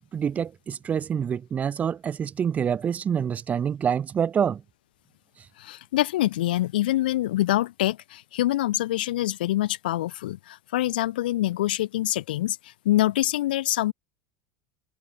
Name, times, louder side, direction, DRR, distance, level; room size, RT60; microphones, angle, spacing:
voice 1, 0.1-4.6, right 8 dB, 30° right, 1.1 m, -26 dB
voice 2, 5.6-13.9, left 15 dB, 85° left, 0.6 m, -25 dB
supercardioid pair, 100°, 5 cm